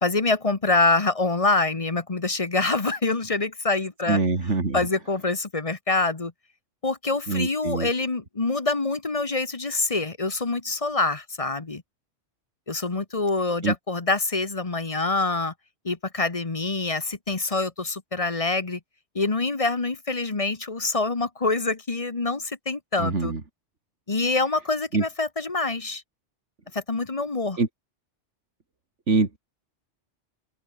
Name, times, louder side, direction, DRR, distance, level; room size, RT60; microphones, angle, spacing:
voice 1, 0.0-4.2 4.7-6.3 6.8-11.8 12.7-15.5 15.8-18.8 19.1-23.3 24.1-26.0 26.7-27.6, left 3 dB, 30° left, 1.3 m, -25 dB
voice 2, 4.1-4.8 7.3-7.9 13.6-13.7 23.0-23.4 24.9-25.0 27.6-27.7 29.1-29.4, right 3 dB, 85° right, 3.0 m, -24 dB
open air
omnidirectional pair, 1.2 m